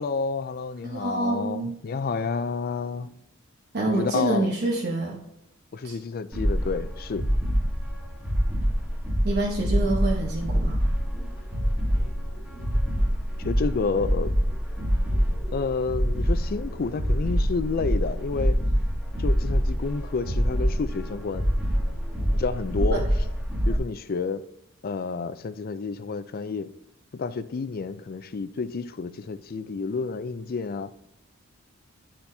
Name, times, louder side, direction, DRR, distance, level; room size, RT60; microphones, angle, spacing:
voice 1, 0.0-3.1 3.9-4.5 5.7-7.3 13.4-14.3 15.5-18.6 19.2-21.5 22.3-23.0 23.7-24.4 24.8-26.7 27.1-30.9, left 4 dB, 45° left, 0.4 m, -30 dB
voice 2, 0.8-1.8 3.7-5.2 5.8-6.0 9.2-10.8 22.9-23.0, right 2 dB, 50° right, 1.1 m, -27 dB
sound 1, 6.3-23.8, equal, 10° right, 1.4 m, -25 dB
11.5 x 4.3 x 2.7 m
head